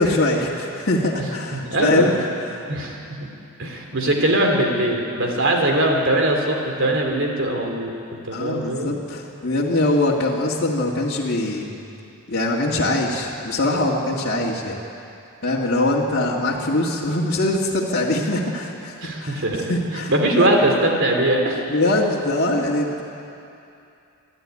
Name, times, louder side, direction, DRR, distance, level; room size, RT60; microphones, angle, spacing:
voice 1, 0.0-2.1 2.5-2.6 8.3-11.7 12.3-14.8 15.4-20.1 20.4-20.5 21.7-23.0, left 1 dB, 50° left, -5 dB, 2.1 m, -22 dB
voice 2, 1.5-2.1 2.7-3.3 3.6-7.9 8.2-8.9 19.0-21.6, right 1 dB, 55° right, 2 dB, 3.3 m, -21 dB
26.0 x 12.0 x 9.8 m, 2.7 s
head